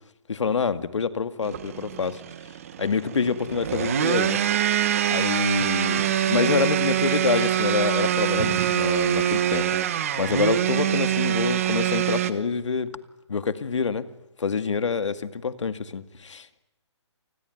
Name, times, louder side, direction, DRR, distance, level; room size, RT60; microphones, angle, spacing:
voice 1, 0.3-2.2 2.8-4.4 5.1-9.7 10.2-13.0 13.3-14.1 14.4-16.5, left 5 dB, 85° left, 2.1 m, -26 dB
sound 1, 1.4-12.3, right 10 dB, 30° right, 1.2 m, -24 dB
28.5 x 21.0 x 9.3 m
hypercardioid pair, 175°, 15 cm